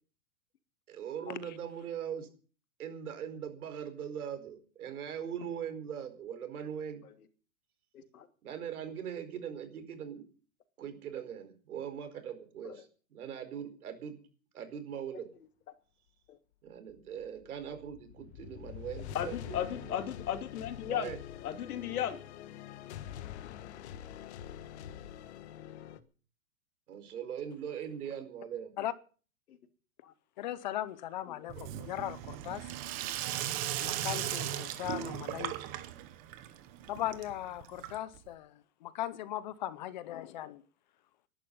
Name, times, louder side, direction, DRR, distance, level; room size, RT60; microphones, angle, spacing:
voice 1, 0.9-2.3 2.8-7.0 8.4-10.3 10.8-14.2 14.5-15.3 16.6-20.0 20.8-21.2 26.9-28.7, right 8 dB, 80° right, 4.8 m, -41 dB
voice 2, 7.9-8.3 12.6-12.8 16.3-16.4 19.1-21.1 21.4-22.2 29.5-29.6 30.0-30.1 31.3-31.6, left 10 dB, 80° left, 2.8 m, -36 dB
sound 1, 16.9-26.0, left 11 dB, 50° left, 1.4 m, -45 dB
voice 3, 30.4-32.7 33.8-35.6 36.9-38.5 38.8-40.6, left 13 dB, 30° left, 0.7 m, -38 dB
Sink (filling or washing), 31.5-38.3, right 12 dB, 20° right, 0.9 m, -38 dB
20.0 x 11.5 x 5.5 m
supercardioid pair, 170°, 43 cm